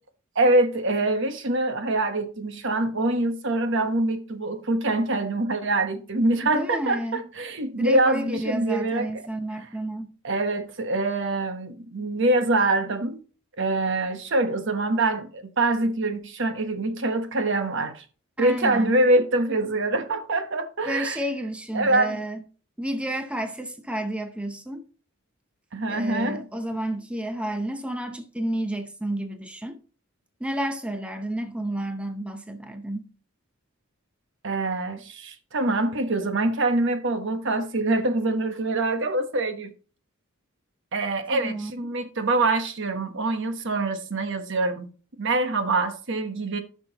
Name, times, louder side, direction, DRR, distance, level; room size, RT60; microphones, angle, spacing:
voice 1, 0.3-9.1 10.2-13.2 13.6-18.0 18.4-21.2 21.7-22.2 25.7-26.4 34.4-39.7 40.9-44.9 45.2-46.6, right 2 dB, 60° right, 1.1 m, -24 dB
voice 2, 6.4-7.2 7.8-10.1 18.4-19.0 20.9-22.4 22.8-24.9 25.9-29.8 30.4-33.1 41.3-41.9, right 1 dB, 5° right, 0.6 m, -31 dB
14.0 x 6.0 x 2.9 m
head